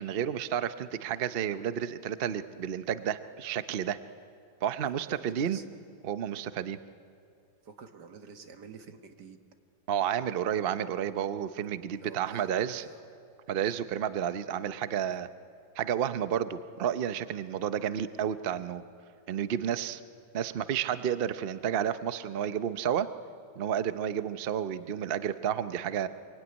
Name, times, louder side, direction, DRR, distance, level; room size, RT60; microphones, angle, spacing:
voice 1, 0.0-4.0 4.6-5.6 6.0-6.8 9.9-12.8 13.5-15.3 15.8-18.8 19.3-20.0 20.3-23.1 23.6-26.1, right 9 dB, 85° right, 12 dB, 0.5 m, -31 dB
voice 2, 4.8-5.6 7.6-9.4 11.9-13.1 13.5-13.8, right 5 dB, 60° right, 6 dB, 2.0 m, -49 dB
24.0 x 23.0 x 9.7 m, 2.5 s
omnidirectional pair, 2.1 m